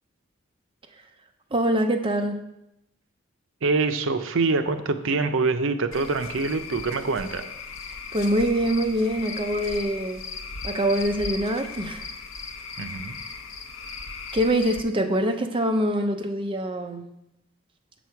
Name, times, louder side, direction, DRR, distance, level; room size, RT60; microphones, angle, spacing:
voice 1, 1.5-2.4 8.1-10.2 10.6-12.0 14.3-17.1, right 1 dB, 25° right, 5 dB, 0.7 m, -24 dB
voice 2, 3.6-7.5 12.8-13.2, right 3 dB, 70° right, 9 dB, 0.6 m, -25 dB
Cricket / Frog, 5.9-14.8, left 4 dB, 85° left, 0.8 m, -37 dB
7.7 x 6.1 x 4.7 m, 0.86 s
head